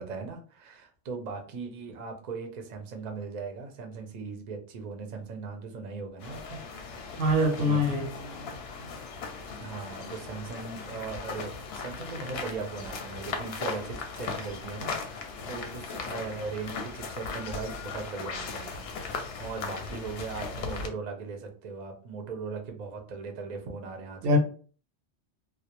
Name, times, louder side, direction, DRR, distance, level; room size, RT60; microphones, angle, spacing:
voice 1, 0.0-6.6 7.6-7.8 9.6-24.4, right 4 dB, 50° right, 0.5 m, -39 dB
sound 1, 6.2-20.9, left 4 dB, 65° left, 0.7 m, -38 dB
voice 2, 7.2-8.1 24.2-24.4, left 1 dB, 90° right, 1.0 m, -23 dB
2.3 x 2.0 x 2.8 m
omnidirectional pair, 1.2 m